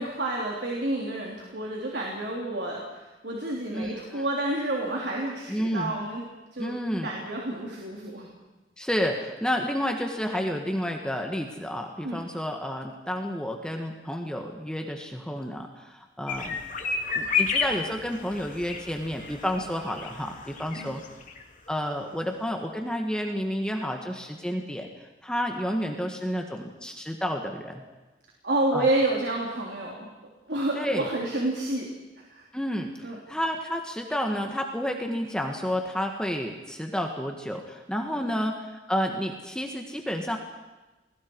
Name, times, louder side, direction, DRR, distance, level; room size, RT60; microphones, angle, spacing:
voice 1, 0.0-6.2 6.5-6.8 7.0-8.3 12.0-12.2 20.7-20.9 28.4-30.1 30.5-31.9 32.3-32.4 33.0-33.2 38.1-38.3, right 2 dB, 75° right, -2 dB, 3.5 m, -29 dB
voice 2, 3.7-4.2 5.5-5.9 6.6-7.1 8.8-16.6 17.2-21.0 21.7-24.9 25.2-27.7 28.7-28.9 30.8-31.1 32.5-32.9 33.3-40.4, equal, 5° left, 2 dB, 1.7 m, -30 dB
sound 1, 16.3-21.4 21.7-21.8 22.0-22.1, left 5 dB, 50° left, 2.5 m, -31 dB
29.5 x 21.5 x 4.8 m, 1.1 s
head